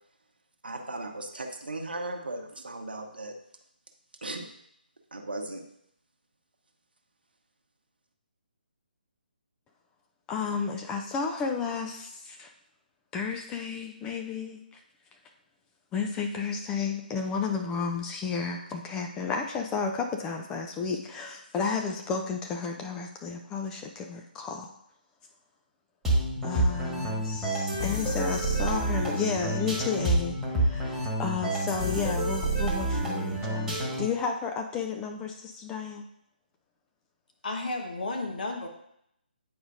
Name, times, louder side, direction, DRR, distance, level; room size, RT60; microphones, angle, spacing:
voice 1, 0.6-3.3 4.2-4.5 5.1-5.6, right 2 dB, 70° right, 4 dB, 1.0 m, -37 dB
voice 2, 10.3-12.5 13.1-14.6 15.9-24.8 26.4-33.7 34.0-36.1, left 5 dB, 10° left, 3 dB, 0.3 m, -32 dB
sound 1, 26.0-34.2, right 1 dB, 5° right, 1.5 m, -28 dB
voice 3, 37.4-38.7, left 2 dB, 60° left, 2 dB, 1.1 m, -32 dB
8.6 x 4.9 x 2.6 m, 0.75 s
figure-of-eight pair, 140°, 5 cm